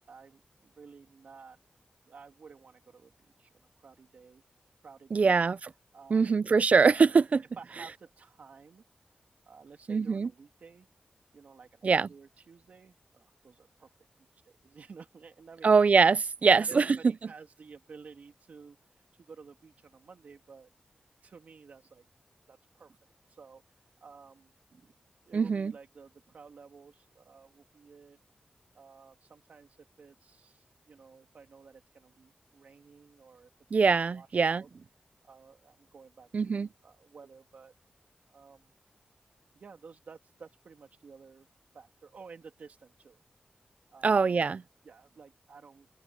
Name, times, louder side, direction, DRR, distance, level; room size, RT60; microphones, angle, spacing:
voice 1, 0.0-1.6 2.0-3.1 3.4-4.4 4.8-5.4 5.9-6.4 7.6-8.8 9.5-10.9 11.3-13.9 14.3-15.7 16.4-18.8 19.2-20.7 21.2-22.0 22.5-23.0 23.3-23.6 24.0-24.5 25.3-28.2 28.7-34.7 35.2-37.7 38.3-38.7 39.5-41.5 41.7-43.2 43.9-44.2 44.8-45.9, right 5 dB, 85° right, 2.9 m, -53 dB
voice 2, 5.1-5.6 6.1-7.4 9.9-10.3 11.8-12.1 15.6-16.9 25.3-25.7 33.7-34.6 36.3-36.7 44.0-44.6, right 5 dB, 65° right, 0.4 m, -23 dB
cardioid pair, 65°, 3 cm